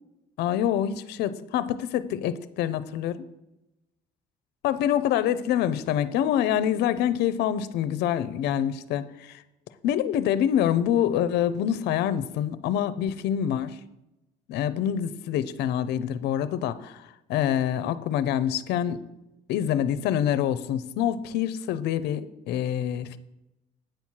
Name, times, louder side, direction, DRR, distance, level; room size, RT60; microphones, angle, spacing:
voice 1, 0.4-3.2 4.6-9.4 9.8-13.7 14.5-17.0 17.3-19.0 19.5-23.2, left 10 dB, 80° left, 14 dB, 0.6 m, -26 dB
8.9 x 4.6 x 7.3 m, 0.93 s
cardioid pair, 110°, 17 cm